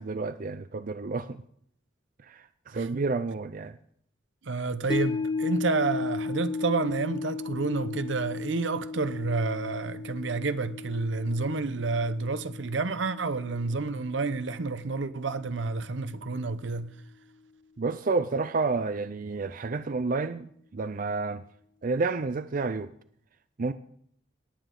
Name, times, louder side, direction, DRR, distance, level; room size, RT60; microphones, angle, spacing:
voice 1, 0.0-1.4 2.3-3.8 17.8-21.4 21.8-22.9 23.6-23.7, right 3 dB, 45° right, 0.5 m, -30 dB
voice 2, 4.4-16.9, right 3 dB, 75° right, 0.8 m, -29 dB
sound 1, 4.9-15.3 15.6-15.7, left 4 dB, 25° left, 0.4 m, -35 dB
18.5 x 9.1 x 3.8 m
head